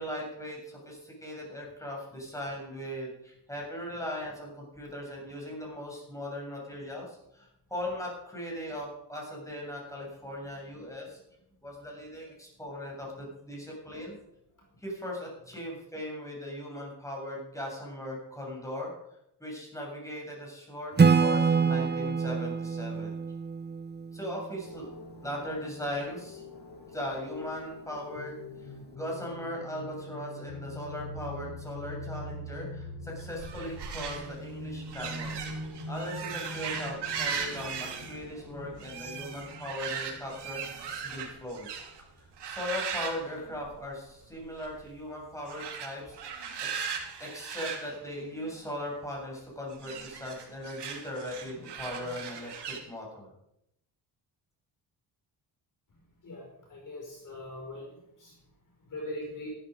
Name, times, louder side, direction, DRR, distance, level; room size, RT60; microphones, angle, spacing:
voice 1, 0.0-11.2 11.6-14.1 14.8-18.9 19.4-23.1 24.1-24.9 25.2-26.4 26.9-35.4 35.9-41.7 42.2-46.2 46.7-46.8 47.2-53.3, left 1 dB, 5° left, -2 dB, 7.6 m, -39 dB
Acoustic guitar / Strum, 21.0-24.5, right 5 dB, 25° right, 0.9 m, -25 dB
sound 1, 24.6-41.8, left 1 dB, 60° left, 7.5 m, -43 dB
sound 2, 33.2-42.0 42.4-44.1 44.3-44.8 45.4-48.8 49.7-52.8, right 6 dB, 60° right, 3.6 m, -38 dB
voice 2, 56.2-58.4 58.8-59.5, left 1 dB, 45° left, 0 dB, 5.2 m, -41 dB
14.5 x 13.0 x 5.3 m, 0.79 s
cardioid pair, 95°, 45 cm